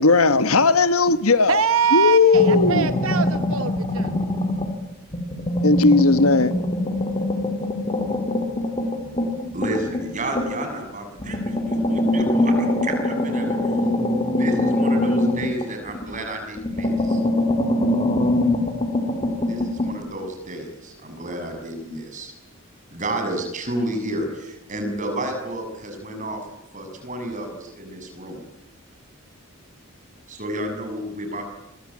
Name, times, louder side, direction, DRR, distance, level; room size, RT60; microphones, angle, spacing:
voice 1, 0.0-1.6 1.9-2.9 5.6-6.5, left 3 dB, 75° left, 1.4 m, -17 dB
voice 2, 1.5-4.1, right 7 dB, 70° right, 1.0 m, -23 dB
sound 1, 2.3-4.8 5.1-10.7 11.2-16.2 16.6-19.9, left 1 dB, 25° left, 3.3 m, -23 dB
voice 3, 9.5-13.7 14.3-17.2 19.5-22.3 22.9-26.4 26.7-28.4 30.3-31.5, right 1 dB, 35° right, 6.7 m, -31 dB
27.5 x 23.0 x 8.7 m
head